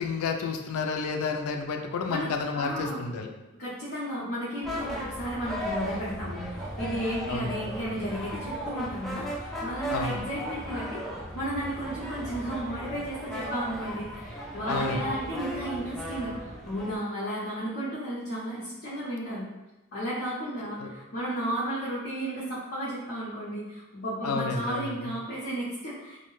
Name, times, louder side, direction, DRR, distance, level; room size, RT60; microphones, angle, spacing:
voice 1, 0.0-3.3 7.3-7.5 9.9-10.3 14.7-15.0 20.6-20.9 24.2-24.9, left 4 dB, 90° left, 4 dB, 0.4 m, -31 dB
voice 2, 2.1-3.0 3.6-11.1 11.3-19.5 19.9-26.3, right 1 dB, 50° left, -8 dB, 0.6 m, -33 dB
sound 1, 4.6-16.9, equal, ahead, 0.3 m, -36 dB
2.6 x 2.1 x 3.0 m, 1.0 s
head